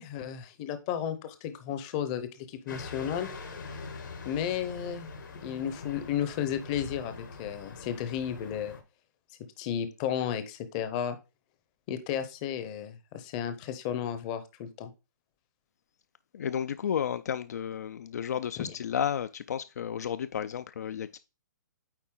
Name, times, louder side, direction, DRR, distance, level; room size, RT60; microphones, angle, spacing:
voice 1, 0.0-3.3 4.2-5.1 5.4-8.7 9.6-11.2 11.9-14.9 18.6-18.7, left 9 dB, 20° left, 0.7 m, -33 dB
sound 1, 2.7-8.8, left 4 dB, 85° left, 2.3 m, -43 dB
voice 2, 16.3-21.2, left 8 dB, 55° left, 0.4 m, -32 dB
8.9 x 4.0 x 3.7 m
hypercardioid pair, 170°, 10 cm